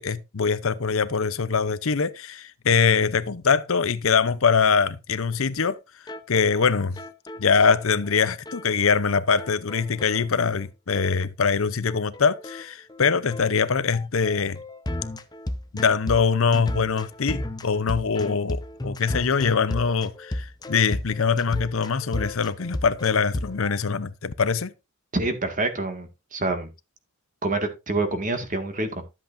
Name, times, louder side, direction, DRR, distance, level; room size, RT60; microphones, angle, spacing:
voice 1, 0.0-5.8 6.3-7.0 7.4-14.6 15.7-24.7, left 5 dB, 65° left, 0.7 m, -23 dB
sound 1, 5.3-5.4 5.6-5.8 6.1-6.2 6.5-6.6 7.0-8.7 8.9-9.1 9.4-10.7 11.0-11.1 11.4-11.5 11.9-23.8, left 1 dB, 20° left, 0.7 m, -34 dB
voice 2, 25.1-26.7 27.4-29.0, right 2 dB, 35° right, 1.9 m, -27 dB
12.5 x 8.0 x 2.6 m
head